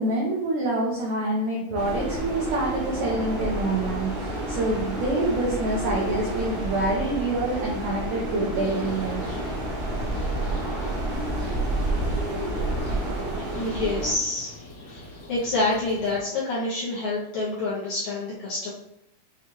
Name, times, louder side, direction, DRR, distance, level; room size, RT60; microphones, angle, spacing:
voice 1, 0.0-9.2, right 2 dB, 80° right, -3 dB, 1.5 m, -27 dB
sound 1, 1.7-14.1, right 1 dB, 55° right, 1.1 m, -29 dB
sound 2, 8.5-16.2, left 2 dB, 60° left, 1.9 m, -44 dB
voice 2, 13.4-14.6 14.9-18.7, left 2 dB, 75° left, -6 dB, 1.8 m, -27 dB
6.3 x 2.3 x 3.0 m, 0.80 s
omnidirectional pair, 4.0 m